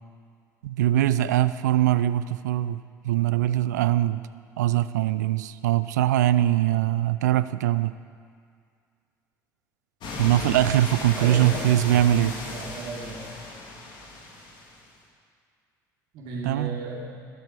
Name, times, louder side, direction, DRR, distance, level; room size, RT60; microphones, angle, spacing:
voice 1, 0.6-4.2 4.6-8.0 10.2-12.4 16.4-16.8, right 13 dB, 80° right, 15 dB, 0.4 m, -22 dB
sound 1, 10.0-14.8, left 3 dB, 55° left, 2.6 m, -36 dB
voice 2, 11.1-13.3 16.1-17.2, right 3 dB, 65° right, -4 dB, 3.0 m, -35 dB
21.0 x 7.3 x 4.9 m, 2.2 s
hypercardioid pair, 60°, 9 cm